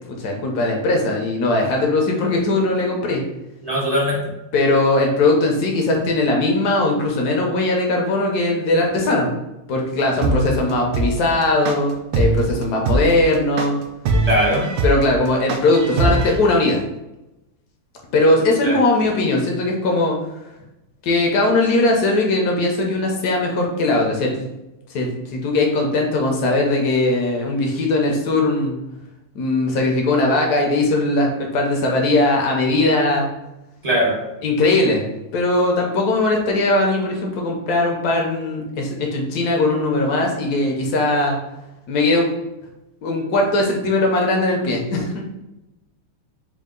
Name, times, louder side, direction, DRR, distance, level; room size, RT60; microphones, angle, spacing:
voice 1, 0.1-3.2 4.5-9.3 9.7-13.8 14.8-16.8 18.1-20.1 21.0-24.5 24.9-28.8 29.3-33.3 34.4-35.0 35.3-41.4 41.9-42.3 43.0-45.1, left 2 dB, 65° left, 1 dB, 1.0 m, -19 dB
voice 2, 3.6-4.2 14.2-14.6 18.6-18.8 33.8-34.2, equal, 35° right, -5 dB, 0.6 m, -19 dB
sound 1, 10.2-16.4, right 2 dB, 75° right, 1.0 m, -20 dB
4.6 x 2.3 x 3.7 m, 0.93 s
omnidirectional pair, 2.3 m